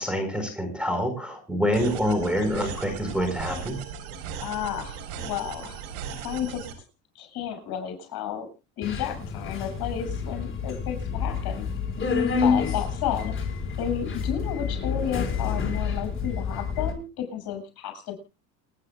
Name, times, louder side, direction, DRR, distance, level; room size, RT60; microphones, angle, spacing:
voice 1, 0.0-3.8, equal, ahead, 7 dB, 4.4 m, -26 dB
sound 1, 1.7-6.7, right 7 dB, 90° right, 4.2 m, -37 dB
voice 2, 4.4-5.8 6.2-6.7 7.2-8.5 8.8-11.7 12.4-13.3 13.8-18.1, left 9 dB, 55° left, 6 dB, 6.9 m, -32 dB
Subway metro underground, 8.8-16.9, left 5 dB, 25° left, 4.4 m, -28 dB
29.0 x 9.8 x 2.3 m, 0.30 s
supercardioid pair, 110°, 44 cm